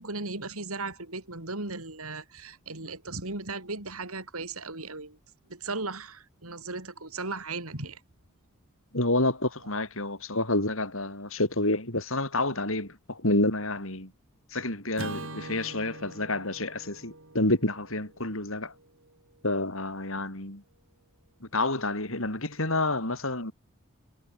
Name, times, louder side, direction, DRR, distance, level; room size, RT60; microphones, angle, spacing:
voice 1, 0.0-5.2 5.5-8.0, right 3 dB, 75° right, 5.5 m, -36 dB
voice 2, 8.9-14.1 14.5-18.7 19.4-20.6 21.4-23.5, left 2 dB, 65° left, 5.6 m, -29 dB
Acoustic guitar / Strum, 14.9-19.4, right 2 dB, 60° right, 7.8 m, -43 dB
head